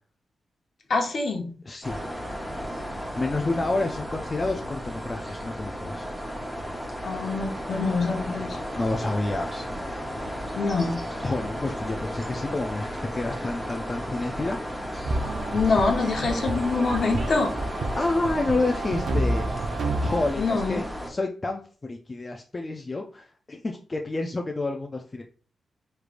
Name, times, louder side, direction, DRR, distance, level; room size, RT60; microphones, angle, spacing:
voice 1, 0.9-1.5 7.0-8.6 10.5-11.0 15.5-17.5 20.4-20.8, left 4 dB, 60° left, 3 dB, 1.0 m, -25 dB
voice 2, 1.7-2.0 3.2-6.1 8.7-9.7 11.2-14.6 17.9-25.2, left 2 dB, 30° left, 3 dB, 0.4 m, -29 dB
sound 1, 1.8-21.1, equal, ahead, 0.8 m, -34 dB
sound 2, 15.0-20.3, right 2 dB, 70° right, 0.6 m, -29 dB
4.8 x 3.2 x 2.5 m, 0.40 s
wide cardioid pair, 110°, 0 cm